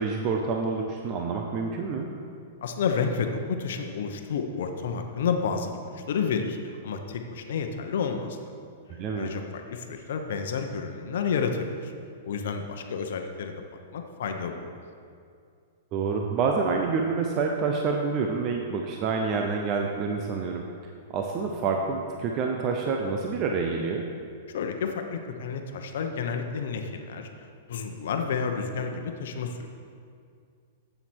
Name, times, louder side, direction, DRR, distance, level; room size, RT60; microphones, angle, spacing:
voice 1, 0.0-2.1 8.9-9.3 15.9-24.1, right 4 dB, 30° right, 2 dB, 0.6 m, -28 dB
voice 2, 2.6-8.4 9.2-11.9 12.2-13.6 13.9-14.7 24.5-27.3 27.7-29.7, left 5 dB, 65° left, 5 dB, 0.9 m, -30 dB
7.9 x 7.3 x 6.2 m, 2.3 s
hypercardioid pair, 160°, 0 cm